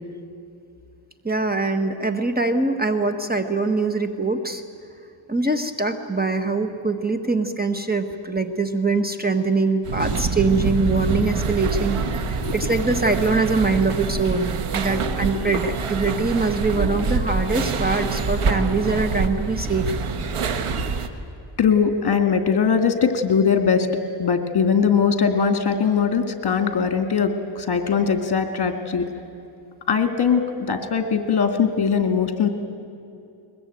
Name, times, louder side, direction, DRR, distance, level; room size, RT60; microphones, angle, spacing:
voice 1, 1.2-4.6 5.3-12.0 12.3-19.9, right 3 dB, 20° right, 7 dB, 1.4 m, -23 dB
sound 1, 9.8-21.1, right 4 dB, 85° right, 1.5 m, -25 dB
voice 2, 21.6-23.9 24.2-29.0 29.9-30.4 30.7-32.5, left 6 dB, 50° left, 7 dB, 2.2 m, -20 dB
22.0 x 21.0 x 9.2 m, 2.6 s
wide cardioid pair, 100°, 50 cm